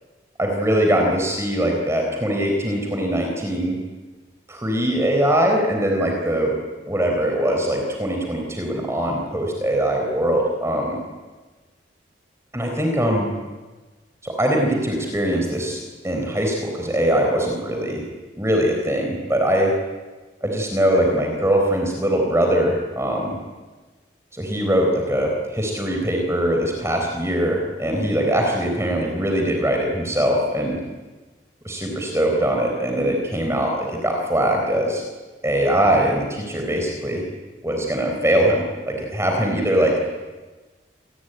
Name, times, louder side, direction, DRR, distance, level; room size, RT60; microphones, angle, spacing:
voice 1, 0.4-3.8 4.5-6.6 6.9-11.0 12.5-13.3 14.2-18.0 18.4-19.7 20.4-23.4 24.3-30.8 31.6-35.0 35.4-37.2 37.6-40.0, right 1 dB, 15° right, 1 dB, 4.1 m, -22 dB
27.5 x 19.5 x 9.2 m, 1.3 s
head